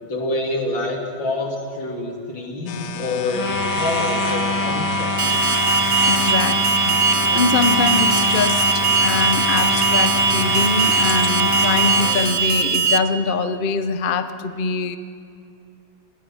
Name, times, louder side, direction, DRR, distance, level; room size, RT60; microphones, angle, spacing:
voice 1, 0.0-5.1, left 2 dB, 90° left, 1 dB, 3.8 m, -27 dB
sound 1, 2.7-12.4, left 8 dB, 65° left, 1.5 m, -31 dB
sound 2, 3.3-12.2, equal, 10° left, 1.9 m, -23 dB
Alarm, 5.2-13.0, right 5 dB, 55° right, 0.7 m, -20 dB
voice 2, 6.0-15.0, left 4 dB, 40° left, 10 dB, 0.7 m, -24 dB
27.5 x 20.5 x 6.3 m, 2.4 s
omnidirectional pair, 2.0 m